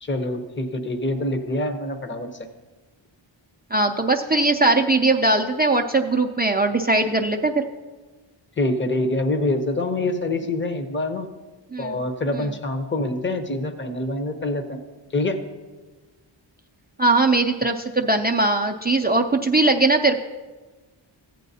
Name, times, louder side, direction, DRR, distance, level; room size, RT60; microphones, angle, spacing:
voice 1, 0.0-2.3 8.6-11.3 11.8-14.8 15.1-15.4, left 2 dB, 25° left, 6 dB, 0.8 m, -25 dB
voice 2, 3.7-7.6 11.7-12.0 12.3-12.5 17.0-20.2, right 2 dB, 20° right, 1 dB, 0.4 m, -20 dB
15.0 x 9.2 x 2.7 m, 1.3 s
wide cardioid pair, 115°, 47 cm